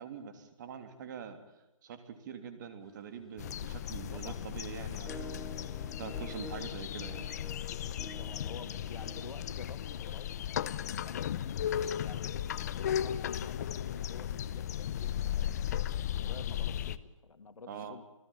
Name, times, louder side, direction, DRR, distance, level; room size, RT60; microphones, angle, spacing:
voice 1, 0.0-1.4 1.8-5.5 6.0-7.3 17.7-18.0, right 7 dB, 35° right, 8 dB, 3.1 m, -44 dB
sound 1, 2.8-9.3, left 1 dB, ahead, 3.6 m, -50 dB
sound 2, 3.4-17.0, left 10 dB, 30° left, 0.8 m, -36 dB
voice 2, 4.1-4.5 4.8-5.2 7.8-15.5 15.9-18.1, left 4 dB, 90° left, 9 dB, 2.6 m, -50 dB
28.5 x 17.0 x 8.8 m, 0.95 s
hypercardioid pair, 160°, 17 cm